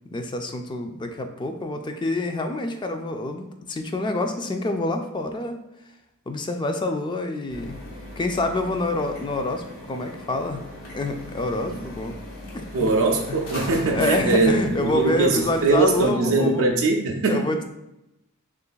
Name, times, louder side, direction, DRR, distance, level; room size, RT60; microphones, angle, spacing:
voice 1, 0.1-5.6 6.3-7.8 8.2-10.7 10.9-12.2 12.5-12.9 13.3-13.4 13.9-16.7 17.3-17.6, left 2 dB, 20° left, 6 dB, 0.3 m, -27 dB
sound 1, 7.5-16.1, left 1 dB, 65° left, 1.2 m, -39 dB
voice 2, 12.7-17.5, right 3 dB, 60° right, 0 dB, 0.5 m, -21 dB
6.7 x 2.5 x 2.3 m, 0.89 s
head